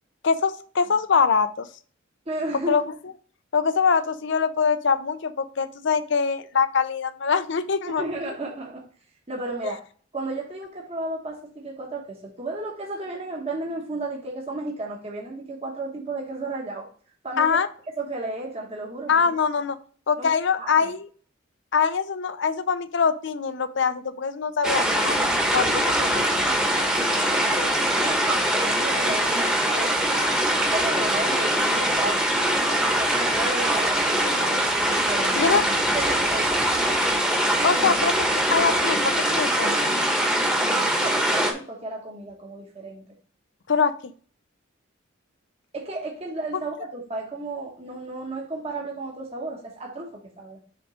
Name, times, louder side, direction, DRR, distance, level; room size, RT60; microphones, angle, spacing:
voice 1, 0.2-1.7 2.7-2.8 3.5-8.0 9.6-9.7 17.4-17.7 19.1-19.8 20.1-21.1 21.7-25.3 25.5-25.6 26.0-26.5 35.4-35.6 37.6-38.1 38.5-40.0 43.7-44.1, left 5 dB, 60° left, 12 dB, 0.6 m, -23 dB
voice 2, 2.3-2.8 7.9-8.9 9.3-9.8 10.1-16.9 17.2-17.6 18.0-19.1 20.2-20.9 25.1-25.2 25.5-26.1 26.4-26.9 27.3-30.2 30.7-32.2 32.8-35.6 35.9-36.9 40.7-43.0 45.7-50.6, right 2 dB, 30° right, -1 dB, 1.2 m, -34 dB
sound 1, 24.6-41.5, right 1 dB, 5° right, 1.1 m, -22 dB
7.1 x 3.7 x 5.0 m, 0.43 s
head